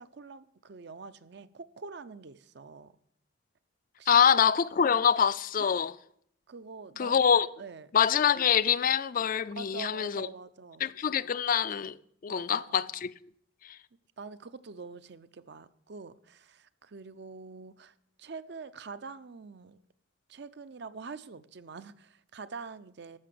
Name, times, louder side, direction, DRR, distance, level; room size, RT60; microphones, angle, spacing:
voice 1, 0.0-2.9 4.0-4.2 5.6-5.8 6.5-7.2 7.6-7.9 9.6-10.9 12.3-12.8 14.2-19.8 20.3-23.2, right 4 dB, 60° right, 0.6 m, -45 dB
voice 2, 4.1-5.9 7.0-7.5 7.9-10.3 10.8-12.0 12.2-13.1, left 7 dB, 45° left, 0.4 m, -25 dB
13.0 x 5.9 x 7.6 m
head